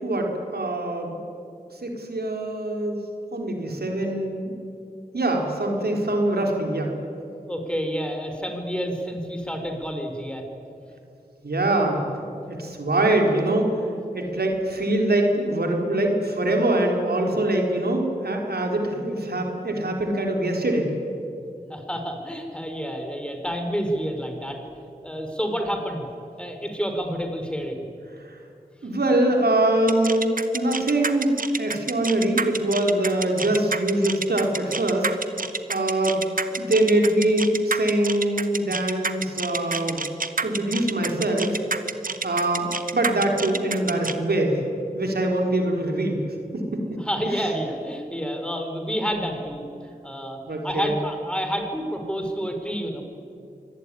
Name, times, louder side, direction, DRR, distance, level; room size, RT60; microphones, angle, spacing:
voice 1, 0.0-1.2 1.8-3.0 3.3-4.5 5.1-6.9 11.4-12.1 12.5-13.8 14.1-20.9 28.2-28.4 28.8-35.1 35.7-36.2 36.6-40.0 40.4-41.6 42.2-42.7 42.9-44.6 44.9-46.2 46.5-46.8 50.5-50.9, right 1 dB, 85° right, 1 dB, 4.0 m, -23 dB
voice 2, 7.4-10.4 21.5-24.6 25.0-26.1 26.4-27.8 47.0-49.6 50.0-53.0, equal, 5° left, 4 dB, 4.5 m, -29 dB
sound 1, 29.9-44.1, right 4 dB, 60° right, 1.4 m, -28 dB
24.5 x 19.0 x 9.9 m, 2.6 s
wide cardioid pair, 50°, 16 cm